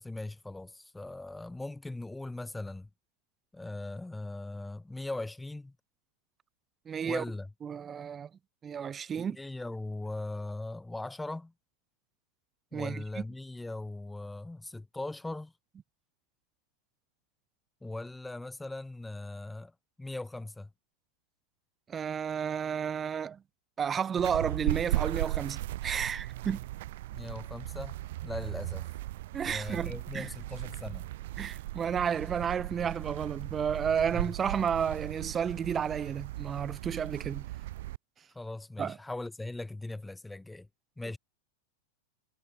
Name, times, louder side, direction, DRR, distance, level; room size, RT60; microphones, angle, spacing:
voice 1, 0.0-2.9 3.5-5.8 7.0-7.5 9.2-11.5 12.7-15.5 17.8-19.7 20.0-20.7 27.1-28.0 28.2-28.9 29.5-31.1 34.1-34.3 38.3-40.7 41.0-41.2, left 2 dB, 5° left, 0.8 m, -39 dB
voice 2, 6.9-7.2 7.6-8.3 8.6-9.4 12.7-13.2 21.9-23.4 23.8-26.6 29.3-30.3 31.4-37.5 38.8-39.0, right 7 dB, 20° right, 0.6 m, -32 dB
sound 1, 24.2-38.0, right 16 dB, 55° right, 1.2 m, -37 dB
figure-of-eight pair, 90°, 0 cm